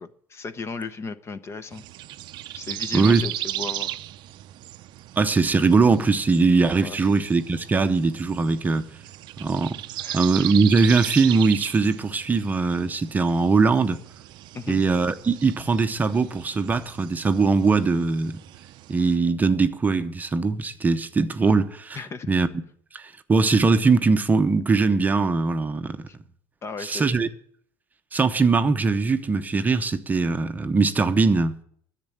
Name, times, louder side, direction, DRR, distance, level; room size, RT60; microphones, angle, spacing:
voice 1, 0.0-1.8 2.5-4.0 6.8-7.0 10.0-10.6 14.5-14.8 21.9-22.3 26.6-27.2, left 4 dB, 30° left, 0.8 m, -35 dB
sound 1, 1.7-19.2, right 15 dB, 55° right, 0.5 m, -37 dB
voice 2, 5.2-8.9 9.4-9.8 10.1-14.0 14.7-18.4 18.9-22.0 22.3-22.5 22.9-26.1 26.8-27.3 28.1-31.6, right 4 dB, 20° right, 0.7 m, -21 dB
10.5 x 7.4 x 9.2 m
supercardioid pair, 120°, 9 cm